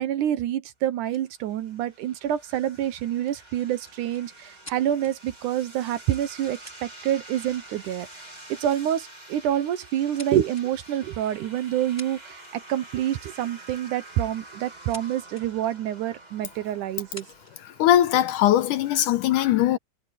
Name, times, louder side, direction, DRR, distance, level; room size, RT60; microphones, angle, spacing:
voice 1, 0.0-8.1 8.5-17.3, right 11 dB, 70° right, 2.2 m, -27 dB
sound 1, 1.1-1.3 3.2-5.1 6.2-6.3 6.6-7.4 7.8-8.0 9.0-9.2 9.6-10.7 11.7-11.8 12.0-12.7 14.2-15.0 15.3-15.5 16.1-16.2 16.9-17.6 18.4-19.1, left 1 dB, 5° left, 3.0 m, -47 dB
sound 2, 1.1-19.0, right 2 dB, 15° right, 2.4 m, -47 dB
voice 2, 17.6-19.8, left 12 dB, 75° left, 2.2 m, -20 dB
omnidirectional pair, 4.0 m